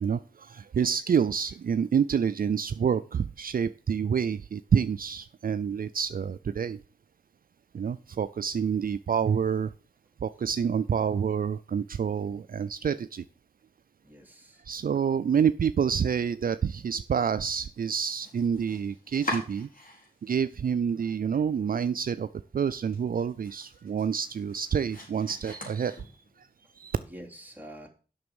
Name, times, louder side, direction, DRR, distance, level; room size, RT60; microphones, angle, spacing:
voice 1, 0.0-6.8 7.7-9.7 10.2-13.2 14.7-19.7 20.2-22.3 22.5-26.1 26.4-26.5 26.8-27.0, right 7 dB, 65° right, 13 dB, 0.4 m, -28 dB
voice 2, 14.0-14.6 27.0-27.9, equal, 10° right, 0 dB, 2.9 m, -46 dB
Domestic sounds home sounds, 17.7-20.3 20.6-21.4 21.7-21.8 22.3-22.4 22.7-26.4, left 1 dB, 60° left, 4.5 m, -42 dB
7.9 x 6.1 x 7.0 m, 0.37 s
cardioid pair, 60°, 16 cm